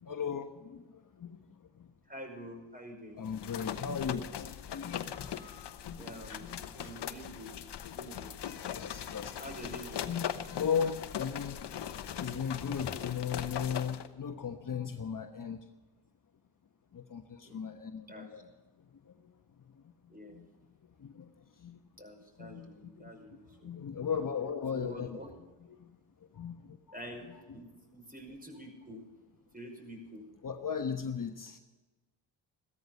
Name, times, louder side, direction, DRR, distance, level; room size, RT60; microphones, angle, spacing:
voice 1, 0.0-1.4 1.8-1.9 3.2-5.4 6.3-6.9 8.0-8.1 8.6-9.3 10.0-11.6 12.2-15.6 16.9-18.5 19.1-19.3 19.7-19.8 20.3-20.5 21.0-21.3 21.6-21.8 22.4-25.2 25.7-25.9 26.3-26.8 30.4-31.6, left 7 dB, 40° left, 6 dB, 1.2 m, -37 dB
voice 2, 2.1-3.2 6.0-7.6 8.0-8.3 9.4-10.1 17.4-17.6 18.1-18.3 20.1-20.4 22.0-23.7 24.7-25.3 26.9-29.1 29.5-30.3, equal, 20° right, 4 dB, 5.5 m, -47 dB
sound 1, 3.3-14.1, left 9 dB, 60° left, 1.1 m, -40 dB
15.5 x 13.5 x 5.3 m, 1.2 s
supercardioid pair, 50°, 47 cm